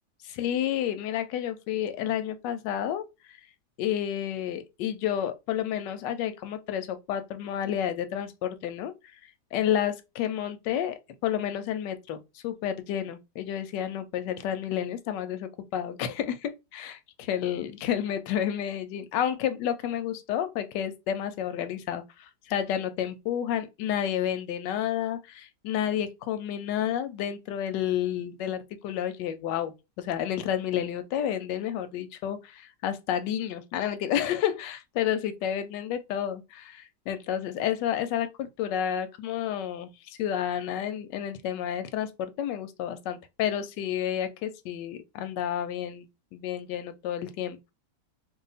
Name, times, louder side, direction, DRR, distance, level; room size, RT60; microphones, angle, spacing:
voice 1, 0.2-3.0 3.8-8.9 9.5-12.2 12.4-17.0 17.3-39.9 40.2-46.1 46.3-47.6, left 10 dB, 90° left, 1.2 m, -30 dB
2.8 x 2.4 x 3.9 m
omnidirectional pair, 1.8 m